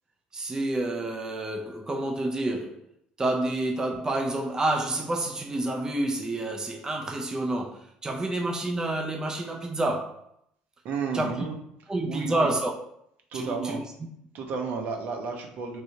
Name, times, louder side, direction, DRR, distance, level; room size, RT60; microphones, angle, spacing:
voice 1, 0.3-2.8 3.2-10.3 11.1-11.4 11.9-12.8 13.3-13.8, right 2 dB, 20° right, 0.5 m, -29 dB
voice 2, 10.8-11.5 12.1-12.5 13.3-13.8 14.3-15.8, right 5 dB, 60° right, 0.7 m, -32 dB
3.2 x 2.7 x 2.7 m
supercardioid pair, 80°, 3 cm